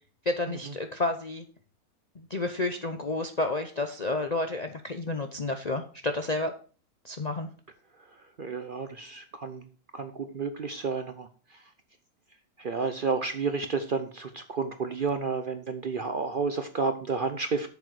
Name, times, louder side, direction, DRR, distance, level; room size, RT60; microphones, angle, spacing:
voice 1, 0.3-1.4 2.2-6.5 7.0-7.5, left 2 dB, 45° left, 5 dB, 0.5 m, -30 dB
voice 2, 8.0-9.7 9.9-11.6 12.6-17.7, right 4 dB, 50° right, 8 dB, 0.7 m, -31 dB
7.9 x 7.1 x 4.7 m, 0.40 s
omnidirectional pair, 1.6 m